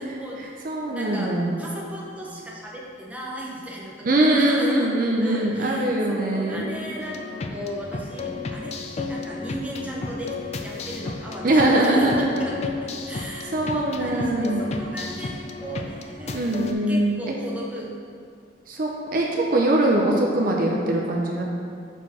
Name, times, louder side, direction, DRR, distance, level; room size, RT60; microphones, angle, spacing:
voice 1, 0.0-0.5 0.9-4.9 5.2-16.5 16.9-17.9, equal, 5° right, -4 dB, 0.7 m, -36 dB
voice 2, 0.6-1.6 4.0-6.7 11.4-12.4 13.5-14.6 16.3-17.2 18.7-21.4, right 1 dB, 45° right, -1 dB, 0.5 m, -22 dB
sound 1, 7.0-16.7, left 3 dB, 35° left, 0.3 m, -34 dB
6.0 x 4.4 x 4.1 m, 2.3 s
head